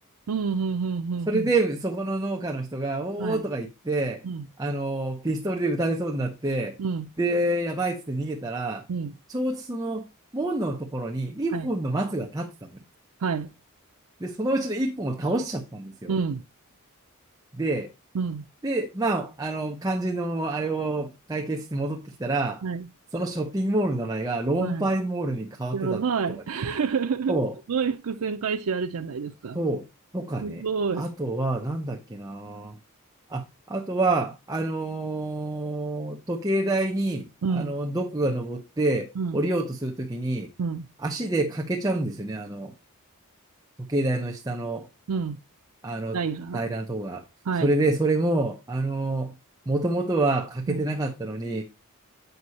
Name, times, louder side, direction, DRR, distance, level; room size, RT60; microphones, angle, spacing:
voice 1, 0.3-1.5 3.2-3.4 4.2-4.5 6.8-7.1 8.9-9.1 11.5-11.7 13.2-13.5 16.1-16.4 18.1-18.5 22.6-22.9 24.6-24.9 25.7-27.4 27.7-29.6 30.4-31.0 37.4-37.8 39.2-39.4 40.6-40.9 45.1-45.4 46.1-46.6 47.4-47.7 50.7-50.9, right 5 dB, 85° right, 0.5 m, -28 dB
voice 2, 1.3-4.2 4.6-6.7 7.2-8.8 9.3-10.1 10.3-12.5 14.2-16.1 17.5-17.9 18.6-22.6 23.1-26.0 27.3-27.5 29.5-29.8 30.1-30.6 31.0-32.7 33.3-37.3 37.5-39.1 39.3-40.5 41.0-42.7 43.9-44.9 45.8-46.2 46.5-47.2 47.6-49.3 49.7-51.6, right 2 dB, 15° right, 0.8 m, -27 dB
8.0 x 6.0 x 4.1 m
head